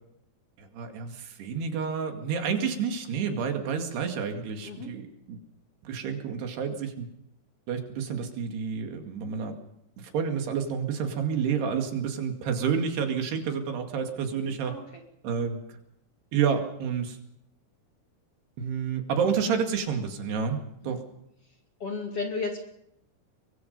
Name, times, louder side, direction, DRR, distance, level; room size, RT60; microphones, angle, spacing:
voice 1, 0.6-5.4 5.8-7.1 7.7-9.6 10.0-14.7 15.2-15.8 16.3-17.2 18.6-20.6 20.8-21.0, right 6 dB, 80° right, 4 dB, 4.3 m, -29 dB
voice 2, 21.8-22.6, left 4 dB, 40° left, 2 dB, 3.0 m, -33 dB
24.0 x 22.0 x 5.4 m, 0.76 s
omnidirectional pair, 4.7 m